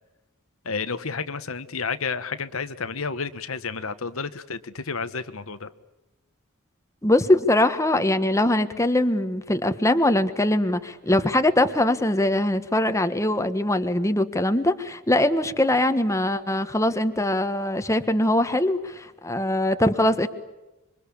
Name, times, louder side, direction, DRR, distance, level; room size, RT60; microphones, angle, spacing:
voice 1, 0.6-5.7, left 5 dB, 75° left, 11 dB, 1.3 m, -31 dB
voice 2, 7.0-20.3, left 1 dB, 15° left, 9 dB, 1.4 m, -22 dB
26.5 x 24.0 x 8.5 m, 1.0 s
head